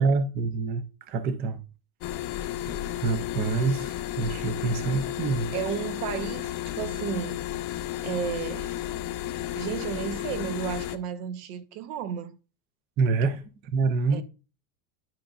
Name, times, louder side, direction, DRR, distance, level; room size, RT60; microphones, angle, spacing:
voice 1, 0.0-1.6 2.7-5.5 13.0-14.2, right 4 dB, 25° right, 0.3 m, -27 dB
sound 1, 2.0-11.0, left 13 dB, 45° left, 0.7 m, -33 dB
voice 2, 5.5-6.5 6.8-7.4 8.0-8.7 9.5-12.4 14.1-14.2, right 9 dB, 80° right, 1.0 m, -33 dB
10.5 x 5.0 x 2.4 m
supercardioid pair, 140°, 46 cm